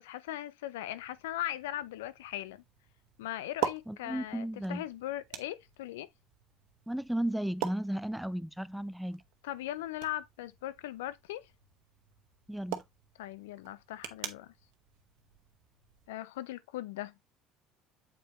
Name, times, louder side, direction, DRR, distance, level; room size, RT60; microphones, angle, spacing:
voice 1, 0.0-2.6 3.2-6.1 9.4-11.5 13.2-14.5 16.1-17.1, left 14 dB, 85° left, 0.5 m, -39 dB
sound 1, 0.9-16.1, right 11 dB, 75° right, 1.0 m, -44 dB
voice 2, 3.9-4.8 6.9-9.2 12.5-12.8, right 1 dB, 5° right, 0.5 m, -34 dB
7.6 x 5.0 x 3.0 m
hypercardioid pair, 75°, 0 cm